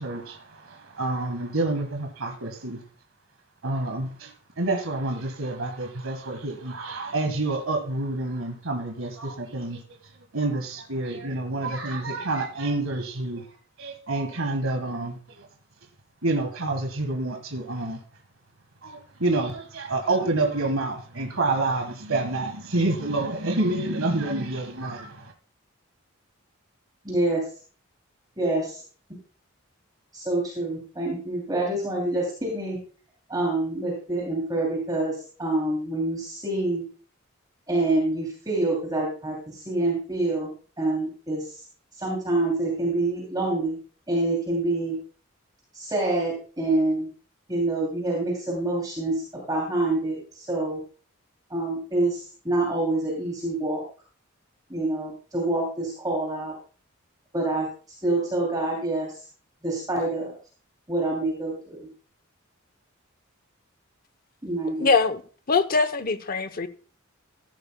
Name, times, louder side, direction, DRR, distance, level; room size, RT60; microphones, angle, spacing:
voice 1, 0.0-2.8 3.6-9.8 10.3-13.4 13.8-15.5 16.2-18.0 18.8-25.3, right 2 dB, 80° right, 1.6 m, -28 dB
voice 2, 27.0-27.4 28.4-28.8 30.1-32.8 33.3-35.1 35.4-36.8 37.7-40.5 40.8-41.4 42.0-43.7 44.1-44.9 45.7-47.1 47.5-50.8 51.5-52.2 52.4-53.8 54.7-56.5 57.3-57.7 58.0-59.1 59.6-60.3 60.9-61.8 64.4-64.9, right 2 dB, 20° right, 2.9 m, -26 dB
voice 3, 64.8-65.2 65.5-66.7, left 4 dB, 45° left, 0.8 m, -22 dB
15.0 x 11.5 x 2.2 m
head